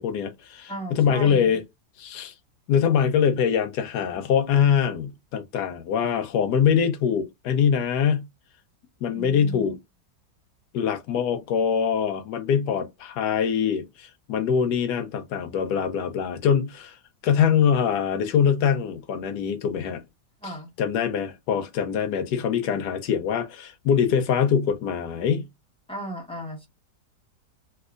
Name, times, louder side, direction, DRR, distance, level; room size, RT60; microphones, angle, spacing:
voice 1, 0.0-1.6 2.0-2.3 2.7-8.3 9.0-9.8 10.7-17.0 17.2-20.0 20.4-20.5 20.8-25.5, left 7 dB, 80° left, 1.2 m, -23 dB
voice 2, 0.7-1.6 9.1-9.7 20.4-20.7 25.9-26.7, right 1 dB, 5° left, 0.6 m, -36 dB
3.4 x 3.0 x 2.4 m
omnidirectional pair, 1.8 m